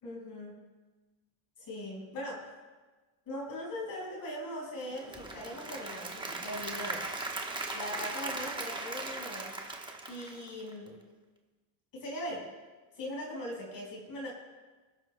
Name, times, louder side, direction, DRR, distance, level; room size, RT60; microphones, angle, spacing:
voice 1, 0.0-0.6 1.6-2.5 3.2-7.2 7.7-9.5 10.1-11.0 11.9-12.5 12.9-14.3, left 1 dB, 45° left, -3 dB, 4.8 m, -40 dB
Applause / Crowd, 4.8-10.9, right 2 dB, 10° right, 1.1 m, -38 dB
28.0 x 11.0 x 2.2 m, 1.3 s
cardioid pair, 140°, 48 cm